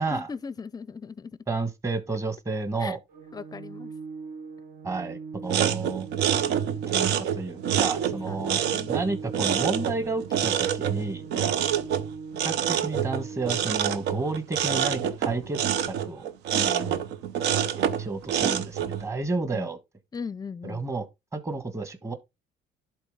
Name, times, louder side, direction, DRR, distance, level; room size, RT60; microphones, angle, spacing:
voice 1, 0.1-1.4 2.8-3.0 3.3-3.9 8.3-8.9 11.3-11.6 16.5-17.0 19.5-19.7 20.1-20.8, left 5 dB, 25° left, 0.5 m, -38 dB
voice 2, 1.5-3.0 4.8-6.1 6.9-8.6 8.9-11.3 12.4-16.3 18.0-19.8 20.6-21.0 21.3-22.1, right 3 dB, 15° right, 1.4 m, -31 dB
Organ, 3.1-14.1, right 5 dB, 65° right, 1.1 m, -41 dB
sound 1, 5.4-19.0, right 9 dB, 80° right, 0.8 m, -27 dB
11.0 x 3.9 x 3.7 m
cardioid pair, 110°, 17 cm